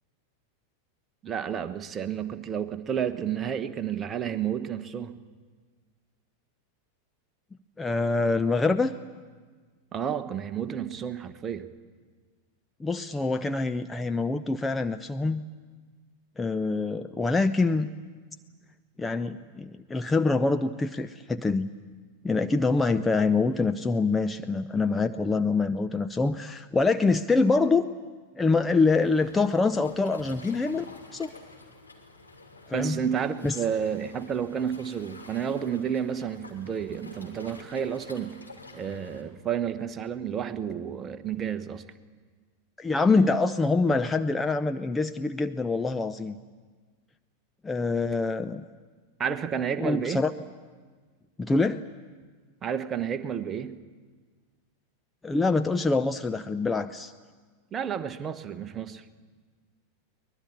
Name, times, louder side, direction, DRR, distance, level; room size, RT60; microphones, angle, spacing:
voice 1, 1.2-5.2 9.9-11.7 32.7-38.4 38.7-41.8 49.2-50.2 52.6-53.8 57.7-59.0, right 8 dB, 25° right, 9 dB, 1.2 m, -31 dB
voice 2, 7.8-8.9 12.8-15.4 16.4-17.9 19.0-21.7 22.2-27.9 28.4-30.8 31.1-31.3 32.7-33.0 33.4-33.6 42.8-46.4 47.6-48.6 49.8-50.3 51.4-51.8 55.2-57.1, left 3 dB, 10° left, 8 dB, 0.6 m, -25 dB
Waves surf, 28.8-39.2, left 2 dB, 85° left, 3.0 m, -49 dB
24.0 x 20.0 x 8.7 m, 1.5 s
figure-of-eight pair, 90°, 0 cm